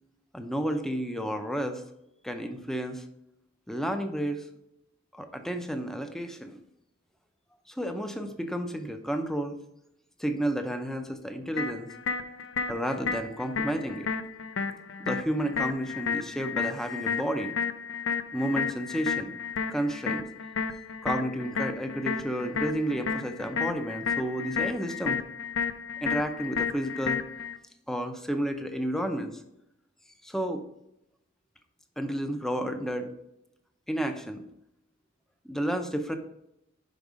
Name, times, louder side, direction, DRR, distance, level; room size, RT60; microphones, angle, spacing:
voice 1, 0.3-1.8 2.2-3.0 3.7-4.5 5.1-6.6 7.7-9.6 10.2-11.9 12.7-14.1 15.0-17.5 18.3-19.4 19.7-20.3 21.0-25.2 26.0-27.2 27.9-29.3 30.2-30.6 32.0-33.1 33.9-34.5 35.4-36.2, equal, ahead, 6 dB, 0.6 m, -31 dB
sound 1, 11.6-27.6, left 6 dB, 80° left, 0.5 m, -32 dB
5.3 x 5.2 x 4.8 m, 0.82 s
head